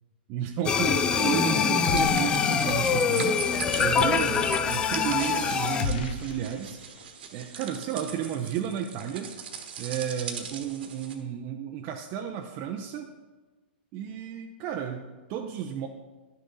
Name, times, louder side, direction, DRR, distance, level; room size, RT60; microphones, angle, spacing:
voice 1, 0.3-3.3 3.8-6.8 7.3-9.3 9.8-13.1 13.9-15.9, right 9 dB, 35° right, 3 dB, 0.6 m, -32 dB
sound 1, 0.6-5.8, left 6 dB, 15° left, 0.4 m, -24 dB
sound 2, 1.8-2.7 3.0-3.1 5.8-7.1, left 6 dB, 60° left, 0.7 m, -34 dB
sound 3, 1.9-11.1, right 7 dB, 70° right, 1.4 m, -40 dB
11.0 x 6.6 x 4.0 m, 1.2 s
hypercardioid pair, 140°, 6 cm